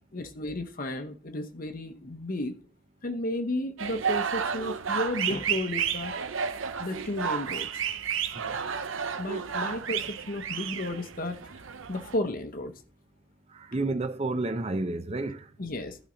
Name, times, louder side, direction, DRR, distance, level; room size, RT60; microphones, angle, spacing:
voice 1, 0.1-2.5 3.0-6.1 6.8-7.7 9.2-11.4 11.9-12.7 15.6-16.0, left 1 dB, 40° left, 0.8 m, -33 dB
sound 1, 3.8-12.2, right 7 dB, 65° right, 0.7 m, -32 dB
voice 2, 13.5-15.5, right 2 dB, 30° right, 0.6 m, -31 dB
11.5 x 4.1 x 5.0 m
head